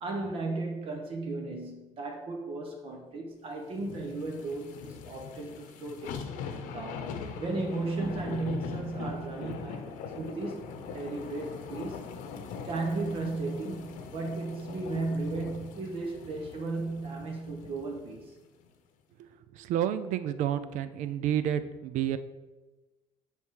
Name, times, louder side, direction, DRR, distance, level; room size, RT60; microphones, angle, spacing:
voice 1, 0.0-7.1 7.4-9.9 10.2-12.0 12.6-18.3, right 3 dB, 45° right, 2 dB, 1.0 m, -35 dB
sound 1, 3.8-18.2 18.6-18.7, left 6 dB, 85° left, 0.8 m, -41 dB
voice 2, 19.6-22.2, right 10 dB, 70° right, 13 dB, 0.5 m, -30 dB
7.1 x 3.6 x 6.4 m, 1.2 s
cardioid pair, 155°, 13 cm